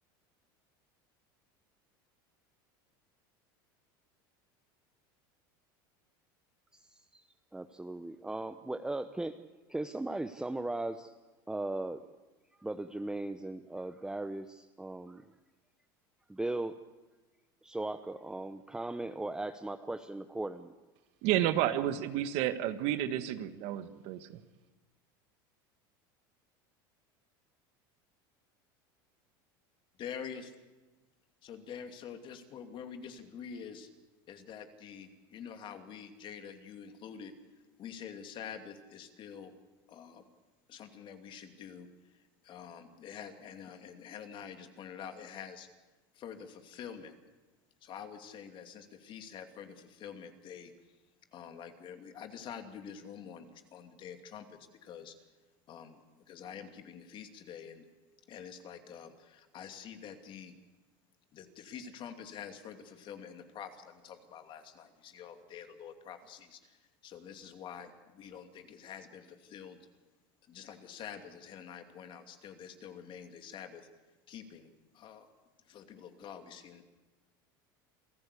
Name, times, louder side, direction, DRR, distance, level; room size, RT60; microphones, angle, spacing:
voice 1, 6.7-7.2 7.5-9.4 9.7-11.1 11.5-12.0 12.6-15.3 16.3-16.8 17.6-20.7, right 2 dB, 5° right, 0.8 m, -38 dB
voice 2, 21.2-24.3, right 12 dB, 60° right, 1.6 m, -31 dB
voice 3, 30.0-30.5 31.4-33.9 34.3-37.3 37.8-39.5 39.9-40.2 40.7-45.7 46.1-47.1 47.8-50.7 51.3-55.1 55.7-57.9 58.3-60.5 61.3-69.8 70.5-73.9 74.3-75.3 75.6-76.8, left 7 dB, 45° left, 2.6 m, -47 dB
27.0 x 14.5 x 8.4 m
supercardioid pair, 110°, 12 cm